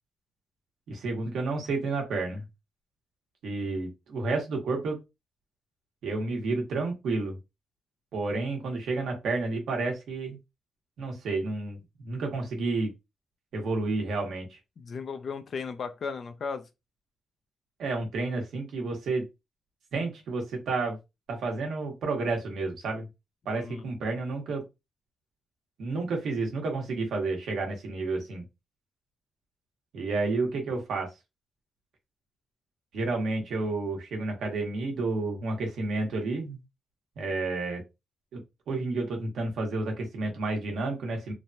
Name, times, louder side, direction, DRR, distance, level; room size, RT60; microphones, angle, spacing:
voice 1, 0.9-2.4 3.4-5.0 6.0-7.4 8.1-10.4 11.0-12.9 13.5-14.6 17.8-19.2 19.9-21.0 21.3-23.1 23.4-24.6 25.8-28.4 29.9-31.1 32.9-36.6 37.2-37.8 38.3-38.4 38.7-41.3, right 3 dB, 80° right, 1.0 m, -30 dB
voice 2, 14.8-16.7 23.5-23.9, left 5 dB, 55° left, 0.5 m, -36 dB
3.2 x 2.2 x 2.7 m
cardioid pair, 95°, 0 cm